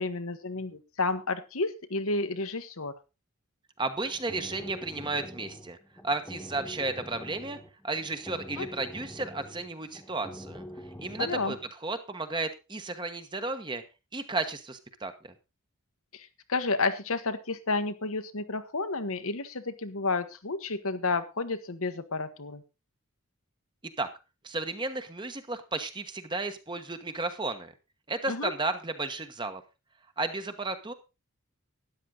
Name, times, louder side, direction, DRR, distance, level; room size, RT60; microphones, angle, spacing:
voice 1, 0.0-2.9 8.6-8.7 11.2-11.5 16.1-22.6 28.3-28.5, left 3 dB, 70° left, 9 dB, 1.3 m, -31 dB
voice 2, 3.8-5.8 6.0-7.6 7.8-10.6 11.0-11.6 11.8-13.8 14.1-15.3 24.0-24.1 24.4-27.7 28.1-29.6 30.2-30.9, right 3 dB, 20° right, 9 dB, 1.1 m, -33 dB
sound 1, 3.9-11.7, equal, 10° left, 1.3 m, -45 dB
13.0 x 10.0 x 3.9 m, 0.28 s
head